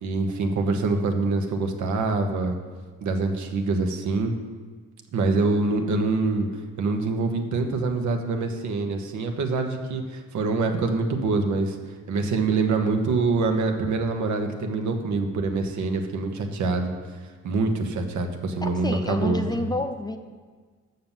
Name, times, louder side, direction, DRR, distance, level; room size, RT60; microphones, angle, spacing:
voice 1, 0.0-2.6 3.0-4.3 5.1-6.5 6.8-11.8 12.1-16.9 17.4-19.5, right 3 dB, 70° right, 5 dB, 1.1 m, -25 dB
voice 2, 18.6-20.2, left 1 dB, 15° left, 6 dB, 0.6 m, -29 dB
6.6 x 5.8 x 7.3 m, 1.5 s
cardioid pair, 90°, 30 cm